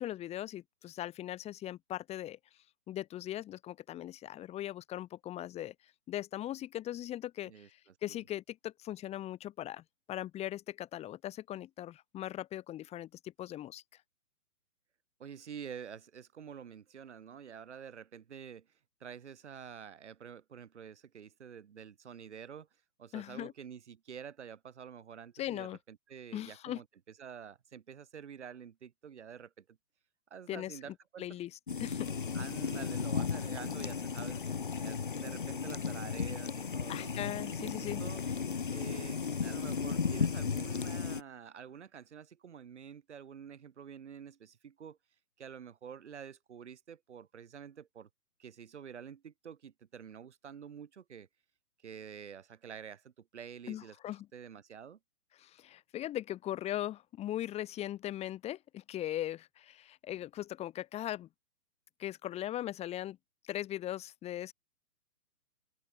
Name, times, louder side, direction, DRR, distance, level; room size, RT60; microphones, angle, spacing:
voice 1, 0.0-2.4 2.9-5.7 6.1-13.8 23.1-23.5 25.4-25.8 26.3-26.8 30.5-30.8 31.2-32.1 36.9-38.0 53.7-54.3 55.4-61.3 62.0-63.2 63.4-64.5, left 13 dB, 15° left, 4.7 m, -39 dB
voice 2, 15.2-18.7 19.0-22.7 23.0-26.8 27.2-29.6 30.3-31.3 32.3-37.1 37.6-38.2 38.7-45.0 45.4-48.1 48.4-51.3 51.8-54.0 54.3-55.0, right 7 dB, 45° right, 5.8 m, -48 dB
sound 1, 31.7-41.2, left 5 dB, 35° left, 0.5 m, -35 dB
open air
figure-of-eight pair, 135°, 47 cm